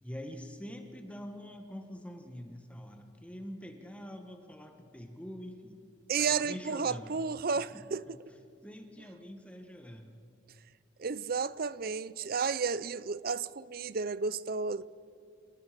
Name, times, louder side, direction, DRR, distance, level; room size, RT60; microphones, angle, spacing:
voice 1, 0.0-5.8 6.2-7.2 7.7-8.2 8.6-10.2, equal, 5° left, 1.5 m, -45 dB
voice 2, 6.1-8.0 11.0-14.8, right 5 dB, 50° right, 0.5 m, -32 dB
28.0 x 19.0 x 5.2 m
head